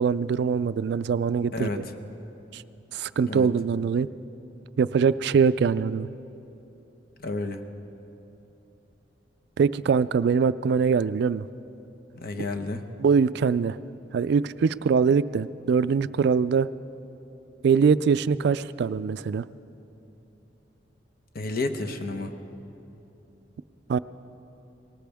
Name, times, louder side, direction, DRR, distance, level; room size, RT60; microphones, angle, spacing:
voice 1, 0.0-1.8 2.5-2.6 2.9-4.1 4.8-6.1 9.6-11.5 13.0-13.8 14.1-16.7 17.6-19.5 23.9-24.0, right 6 dB, 65° right, 16 dB, 0.3 m, -23 dB
voice 2, 7.2-7.6 12.1-12.8 21.3-22.3, left 2 dB, 55° left, 5 dB, 0.9 m, -30 dB
19.0 x 18.5 x 3.5 m, 3.0 s
head